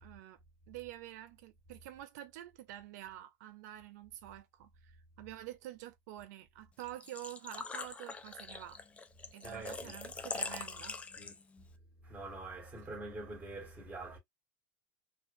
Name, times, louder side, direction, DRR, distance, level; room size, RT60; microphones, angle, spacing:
voice 1, 0.0-0.4 0.7-8.8 9.3-11.0, right 14 dB, 75° right, 0.4 m, -48 dB
Engine / Trickle dribble / Fill (with liquid), 6.8-11.6, left 4 dB, 15° left, 0.3 m, -43 dB
voice 2, 9.4-10.0 11.2-11.4 12.0-14.2, right 2 dB, 15° right, 1.5 m, -45 dB
3.2 x 2.5 x 2.6 m
supercardioid pair, 140°, 9 cm